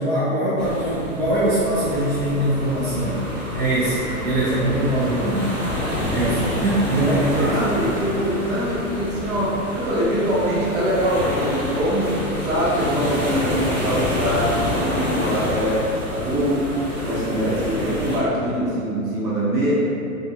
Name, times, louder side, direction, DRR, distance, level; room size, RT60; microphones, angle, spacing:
voice 1, 0.0-3.3 3.5-5.6 6.1-7.6, right 1 dB, 45° right, -10 dB, 0.7 m, -22 dB
sound 1, 0.6-18.2, left 1 dB, 15° right, 0.4 m, -28 dB
voice 2, 7.4-16.7 17.0-19.7, equal, 65° right, -8 dB, 1.2 m, -23 dB
2.5 x 2.3 x 2.7 m, 2.5 s
hypercardioid pair, 135°, 44 cm